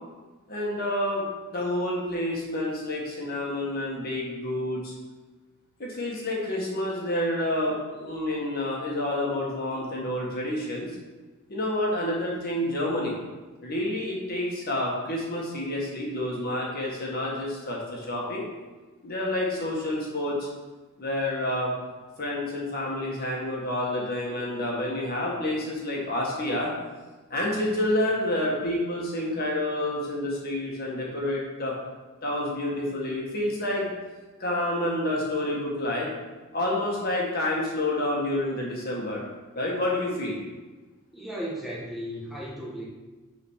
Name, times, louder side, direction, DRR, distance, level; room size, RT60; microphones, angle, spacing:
voice 1, 0.5-1.2 1.5-4.9 5.8-10.9 11.5-13.1 13.6-18.5 19.0-20.5 21.0-21.7 22.2-26.7 27.3-31.7 32.2-33.9 34.4-36.1 36.5-39.2 39.5-40.4, left 1 dB, 45° left, -3 dB, 1.7 m, -28 dB
voice 2, 41.1-42.8, equal, ahead, -7 dB, 1.3 m, -35 dB
6.7 x 4.1 x 6.4 m, 1.2 s
head